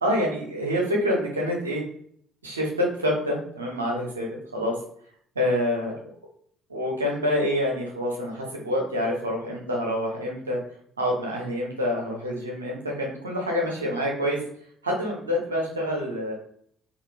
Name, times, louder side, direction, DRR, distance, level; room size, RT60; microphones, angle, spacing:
voice 1, 0.0-1.8 2.4-4.7 5.4-5.9 6.7-10.6 11.0-14.4 14.8-16.3, left 1 dB, 85° right, -1 dB, 0.6 m, -27 dB
3.8 x 2.4 x 2.5 m, 0.62 s
figure-of-eight pair, 50°, 0 cm